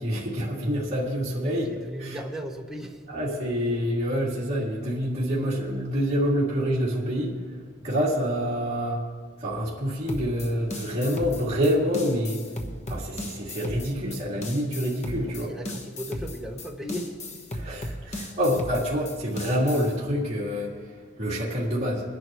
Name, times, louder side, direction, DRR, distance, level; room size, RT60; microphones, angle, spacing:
voice 1, 0.0-1.7 2.0-2.2 3.1-7.4 7.8-9.0 9.4-12.4 12.9-15.5 17.5-22.0, equal, 35° right, -7 dB, 2.4 m, -27 dB
voice 2, 1.7-3.0 15.3-17.4, equal, ahead, 0 dB, 1.0 m, -36 dB
sound 1, 10.1-20.0, left 1 dB, 35° left, 1.1 m, -36 dB
21.5 x 10.5 x 3.0 m, 1.5 s
head